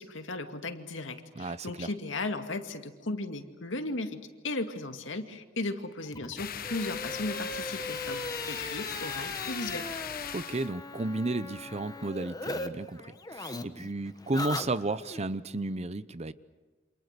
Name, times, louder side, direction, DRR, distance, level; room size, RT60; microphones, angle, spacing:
voice 1, 0.0-9.9, left 2 dB, 80° left, 6 dB, 2.2 m, -36 dB
voice 2, 1.4-1.9 10.3-16.3, right 2 dB, 35° right, 15 dB, 0.8 m, -33 dB
sound 1, 6.1-12.7 13.0-15.2, left 2 dB, 20° left, 1.3 m, -39 dB
sound 2, 6.4-10.7, left 8 dB, 50° left, 1.1 m, -39 dB
29.0 x 27.0 x 6.8 m, 1.3 s
head